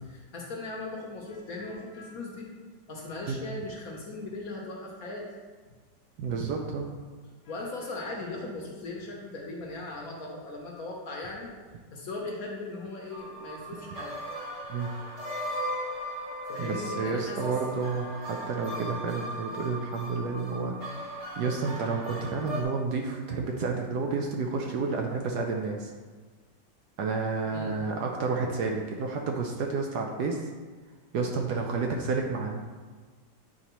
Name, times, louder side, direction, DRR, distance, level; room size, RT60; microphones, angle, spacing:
voice 1, 0.1-2.5 2.9-5.3 7.4-11.5 11.9-14.2 16.5-17.6 27.5-27.8, left 2 dB, 55° left, -1 dB, 1.2 m, -38 dB
voice 2, 6.2-6.9 14.7-14.9 16.6-25.9 27.0-30.4 31.1-32.6, right 4 dB, 70° right, 1 dB, 1.0 m, -30 dB
sound 1, 13.1-22.6, equal, 45° right, 1.1 m, -37 dB
8.8 x 4.1 x 3.0 m, 1.4 s
omnidirectional pair, 2.1 m